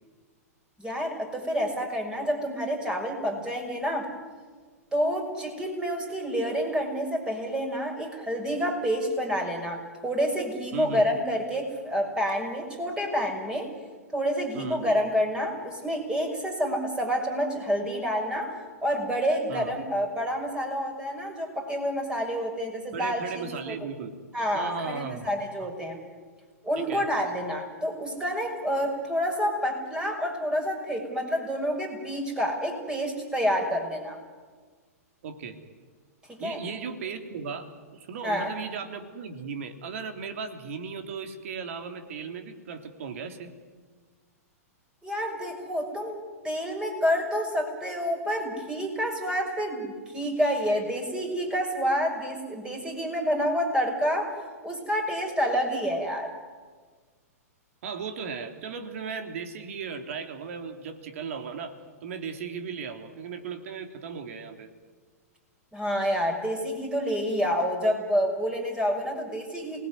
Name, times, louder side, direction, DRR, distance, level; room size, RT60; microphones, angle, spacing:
voice 1, 0.8-4.1 4.9-13.7 14.1-18.5 18.8-23.8 24.3-26.0 26.6-34.2 36.3-36.6 38.2-38.5 45.0-46.2 46.4-54.3 54.6-56.3 65.7-69.8, equal, 10° right, 2 dB, 6.3 m, -28 dB
voice 2, 19.5-19.8 22.9-24.1 24.5-25.3 25.6-25.7 26.8-27.0 35.2-35.6 36.4-37.7 37.9-43.5 57.8-61.7 62.0-64.7, right 5 dB, 60° right, 6 dB, 3.3 m, -36 dB
28.5 x 19.5 x 9.7 m, 1.5 s
figure-of-eight pair, 110°, 9 cm